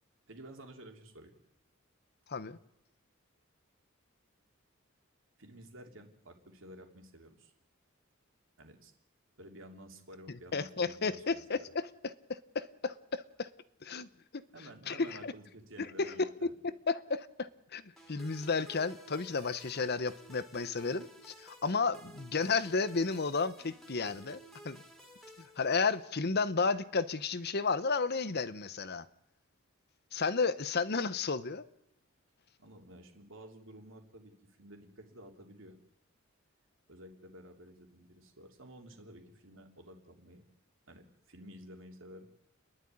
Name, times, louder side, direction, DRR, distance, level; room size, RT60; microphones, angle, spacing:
voice 1, 0.3-1.4 5.4-7.5 8.6-8.9 9.4-11.6 14.5-16.5 32.6-35.8 36.9-40.4 40.9-42.3, right 1 dB, 65° right, 3.2 m, -52 dB
voice 2, 10.5-11.9 12.3-13.5 13.8-14.1 14.3-14.4 14.9-15.3 15.8-16.1 16.4-17.8 18.1-24.4 24.6-24.8 25.4-29.0 30.1-31.6, left 4 dB, 50° left, 0.9 m, -32 dB
sound 1, 18.0-26.2, right 1 dB, ahead, 3.0 m, -54 dB
29.5 x 11.0 x 9.8 m
head